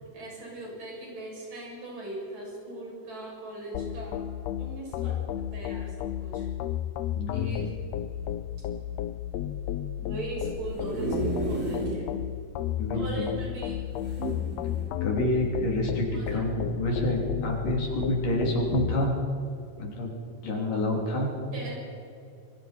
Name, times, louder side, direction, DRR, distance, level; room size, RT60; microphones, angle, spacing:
voice 1, 0.1-4.2 4.6-6.5 7.3-7.7 10.0-12.1 12.9-13.8 16.1-16.4 16.7-17.0 21.5-21.8, right 2 dB, 75° right, -4 dB, 9.3 m, -39 dB
sound 1, 3.7-19.0, left 11 dB, 90° left, 1.4 m, -33 dB
voice 2, 7.2-7.7 12.8-13.2 15.0-19.2 19.8-20.1 20.4-21.3, left 1 dB, 70° left, -1 dB, 5.1 m, -28 dB
sound 2, 10.5-12.0 12.5-12.6 12.8-12.9 14.0-14.9 15.6-15.8, right 3 dB, 45° right, 7.9 m, -33 dB
26.5 x 23.5 x 4.5 m, 2.6 s
omnidirectional pair, 3.9 m